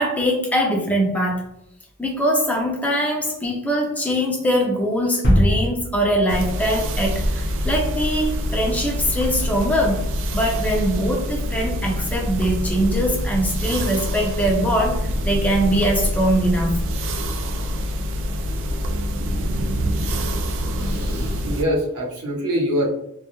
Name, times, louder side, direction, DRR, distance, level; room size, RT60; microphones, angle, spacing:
voice 1, 0.0-1.5 2.0-10.0 10.3-16.8, equal, 5° left, -1 dB, 0.5 m, -22 dB
sound 1, 5.2-7.3, equal, 50° left, 0.7 m, -22 dB
sound 2, 6.3-21.6, equal, 60° right, 0.3 m, -25 dB
voice 2, 20.8-22.9, equal, 80° right, -3 dB, 0.8 m, -24 dB
2.2 x 2.1 x 2.9 m, 0.77 s
head